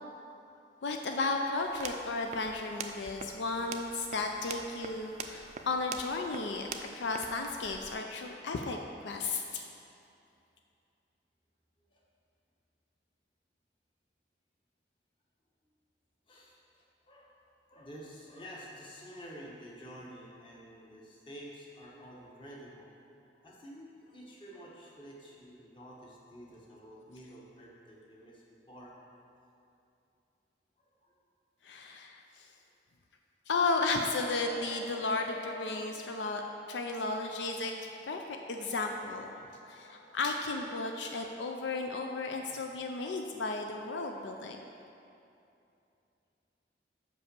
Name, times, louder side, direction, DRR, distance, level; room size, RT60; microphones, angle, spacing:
voice 1, 0.8-6.7 6.9-8.8 9.0-9.7 31.6-32.2 33.5-36.4 36.7-37.7 38.1-38.2 38.5-39.4 39.7-44.6, left 3 dB, 80° left, 3 dB, 0.5 m, -34 dB
sound 1, 1.6-7.9, right 5 dB, 40° right, 0.4 m, -45 dB
voice 2, 16.3-17.4 17.7-22.9 23.3-29.0 30.8-31.1 42.5-42.6, equal, 25° left, -4 dB, 1.1 m, -50 dB
sound 2, 33.5-40.9, left 3 dB, 60° left, 0.8 m, -50 dB
5.4 x 5.4 x 6.7 m, 2.7 s
head